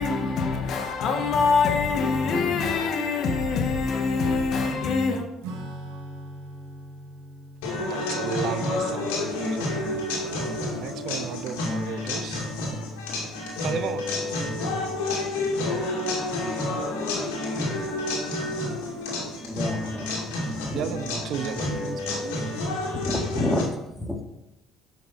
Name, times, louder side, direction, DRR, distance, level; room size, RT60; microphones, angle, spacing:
voice 1, 0.0-5.3, left 4 dB, 60° left, 1.5 m, -24 dB
Acoustic guitar / Strum, 5.4-11.4, right 1 dB, 85° right, 1.5 m, -43 dB
sound 1, 7.6-23.6, left 2 dB, 90° left, 2.4 m, -29 dB
voice 2, 7.7-12.5 13.6-14.2 20.7-22.6, right 8 dB, 65° right, 0.6 m, -35 dB
voice 3, 19.5-20.9 21.6-21.7 22.9-24.2, left 1 dB, 5° right, 2.1 m, -30 dB
10.5 x 5.9 x 4.2 m
supercardioid pair, 75°, 0 cm